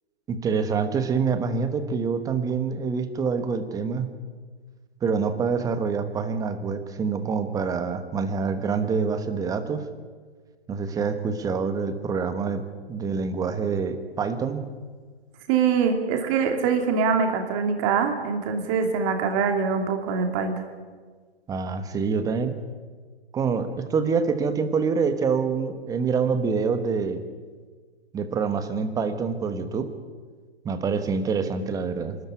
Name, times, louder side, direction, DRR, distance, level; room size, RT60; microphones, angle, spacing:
voice 1, 0.3-4.1 5.0-9.9 10.7-14.6 21.5-22.6 23.3-27.2 28.1-29.9 30.6-32.2, right 5 dB, 10° right, 9 dB, 1.3 m, -26 dB
voice 2, 15.5-20.6, right 6 dB, 30° right, 5 dB, 2.7 m, -23 dB
25.5 x 13.5 x 9.6 m, 1.5 s
hypercardioid pair, 140°, 31 cm